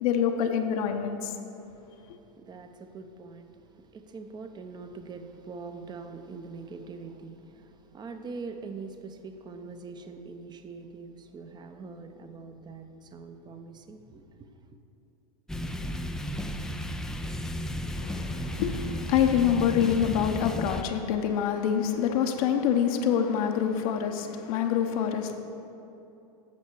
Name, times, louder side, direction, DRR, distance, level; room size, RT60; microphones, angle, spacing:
voice 1, 0.0-1.3 18.0-25.4, left 8 dB, 60° left, 0.9 m, -26 dB
voice 2, 2.3-14.7, right 4 dB, 20° right, 0.7 m, -43 dB
sound 1, 15.5-20.8, equal, 5° left, 0.4 m, -34 dB
8.5 x 6.4 x 6.3 m
hypercardioid pair, 110°, 21 cm